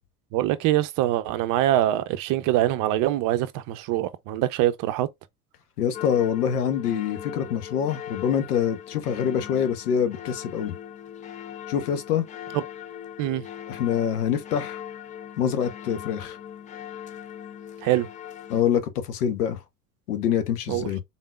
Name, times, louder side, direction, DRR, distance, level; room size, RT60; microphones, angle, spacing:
voice 1, 0.3-5.1 12.5-12.6 13.2-13.4 17.8-18.1 20.7-20.9, right 14 dB, 45° right, 0.7 m, -24 dB
voice 2, 5.8-10.7 11.7-12.2 13.7-14.8 15.4-16.4 18.5-19.6 20.1-21.0, left 8 dB, 75° left, 1.1 m, -25 dB
sound 1, 5.9-18.6, left 10 dB, 20° left, 0.3 m, -40 dB
3.9 x 3.6 x 2.3 m
hypercardioid pair, 80°, 46 cm